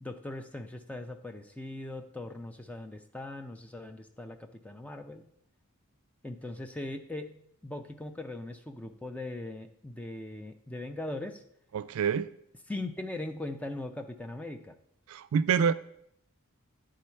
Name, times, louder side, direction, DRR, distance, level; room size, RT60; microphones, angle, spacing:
voice 1, 0.0-5.2 6.2-11.4 12.7-14.8, left 2 dB, 5° left, 0.4 m, -40 dB
voice 2, 11.7-12.3 15.1-15.7, right 7 dB, 75° right, 0.3 m, -26 dB
9.8 x 3.8 x 4.4 m
head